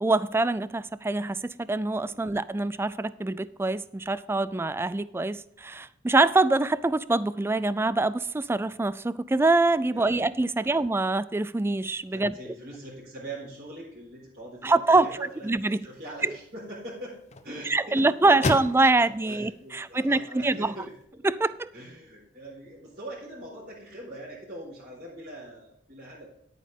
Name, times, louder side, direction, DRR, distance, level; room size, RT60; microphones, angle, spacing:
voice 1, 0.0-12.4 14.6-15.2 15.4-15.8 16.2-16.4 17.7-20.7 21.2-21.7, right 2 dB, 15° right, 17 dB, 0.3 m, -24 dB
voice 2, 2.0-2.4 9.9-10.3 10.6-10.8 12.1-17.2 17.4-18.1 18.4-18.6 18.9-20.9 21.7-26.3, right 1 dB, 60° right, -8 dB, 4.3 m, -42 dB
sound 1, 14.9-21.0, left 2 dB, 40° left, 0.8 m, -38 dB
10.5 x 9.3 x 3.6 m, 0.74 s
head